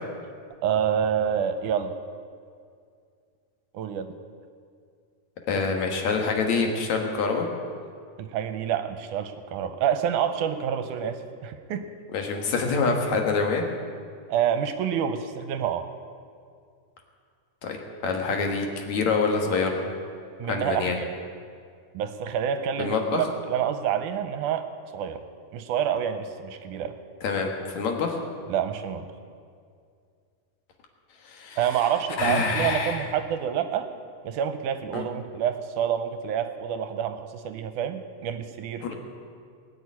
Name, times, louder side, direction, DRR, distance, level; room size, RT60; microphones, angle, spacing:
voice 1, 0.6-1.9 3.7-4.1 8.2-11.8 14.3-15.9 20.4-21.1 21.9-24.7 24.9-25.2 25.5-27.0 28.5-29.1 31.6-33.9 34.2-38.9, right 9 dB, 75° right, 9 dB, 2.1 m, -28 dB
voice 2, 5.5-7.5 12.1-13.6 17.6-17.8 18.0-19.8 20.5-21.0 22.8-23.2 27.2-28.2 31.2-31.6 32.2-33.1 34.9-35.0 38.8-38.9, left 4 dB, 65° left, 2 dB, 2.6 m, -26 dB
20.0 x 6.8 x 9.6 m, 2.2 s
omnidirectional pair, 3.8 m